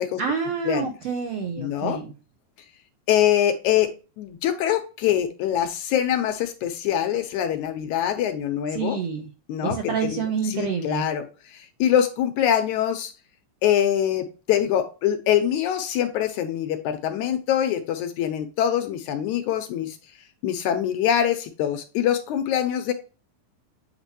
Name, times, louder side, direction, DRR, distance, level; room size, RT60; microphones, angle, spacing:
voice 1, 0.2-2.1 8.7-9.3 9.6-11.0, right 6 dB, 75° right, 4 dB, 1.5 m, -28 dB
voice 2, 1.6-2.0 3.1-3.9 4.2-9.0 9.5-10.2 10.5-13.1 13.6-20.0 20.4-22.9, left 10 dB, 75° left, 7 dB, 2.0 m, -24 dB
8.1 x 4.3 x 2.9 m, 0.32 s
omnidirectional pair, 3.7 m